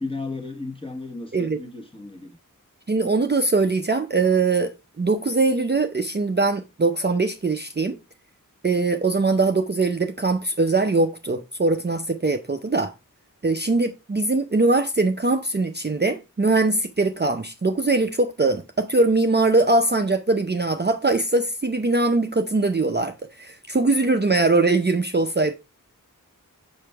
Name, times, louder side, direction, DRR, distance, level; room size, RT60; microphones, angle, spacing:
voice 1, 0.0-2.4, left 3 dB, 15° left, 1.2 m, -34 dB
voice 2, 2.9-8.0 8.6-12.9 13.4-25.5, right 3 dB, 30° right, 0.5 m, -22 dB
5.5 x 5.0 x 3.4 m
wide cardioid pair, 40°, 34 cm